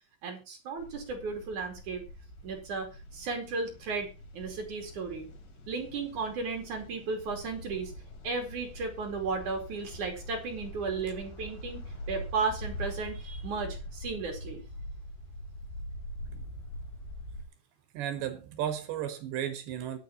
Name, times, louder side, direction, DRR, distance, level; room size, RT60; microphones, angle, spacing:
voice 1, 0.2-2.0 2.4-5.3 5.7-7.9 8.2-14.6, right 4 dB, 45° right, 3 dB, 3.3 m, -35 dB
sound 1, 0.8-17.5, equal, 50° left, 3.5 m, -44 dB
voice 2, 17.9-20.0, right 10 dB, 70° right, 8 dB, 3.4 m, -34 dB
23.0 x 7.8 x 3.0 m, 0.29 s
omnidirectional pair, 5.7 m